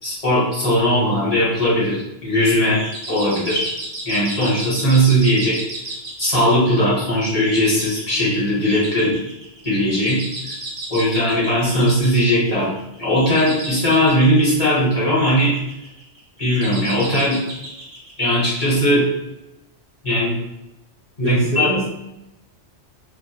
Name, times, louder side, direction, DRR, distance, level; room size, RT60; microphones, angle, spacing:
voice 1, 0.0-3.7 4.0-5.6 6.2-9.2 9.6-10.2 10.9-12.7 13.0-15.6 16.4-17.4 18.2-19.1 20.0-20.3 21.2-21.7, equal, 35° left, -9 dB, 1.0 m, -18 dB
sound 1, 2.7-18.8, right 1 dB, 45° right, 0.3 m, -34 dB
voice 2, 21.2-21.9, equal, 60° right, -5 dB, 0.7 m, -24 dB
2.3 x 2.1 x 2.7 m, 0.91 s
omnidirectional pair, 1.2 m